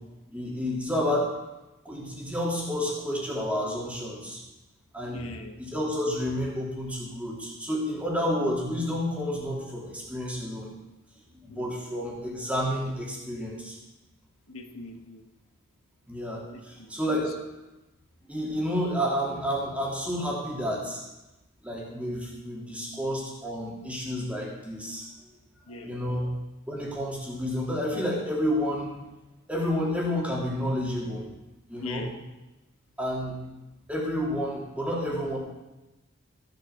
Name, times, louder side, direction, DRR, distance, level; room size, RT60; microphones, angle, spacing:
voice 1, 0.3-1.3 1.8-4.4 4.9-5.2 5.6-10.7 11.4-13.8 16.1-17.3 18.2-21.0 21.6-25.1 25.8-26.3 26.7-28.9 29.5-31.3 31.7-32.1 33.0-33.4 33.9-35.4, equal, 5° right, -3 dB, 2.7 m, -30 dB
voice 2, 5.1-5.6 11.5-11.8 14.5-15.3 16.5-16.9 25.7-26.3 31.7-32.1, left 3 dB, 80° left, 5 dB, 1.4 m, -41 dB
15.0 x 7.9 x 5.8 m, 1.0 s
head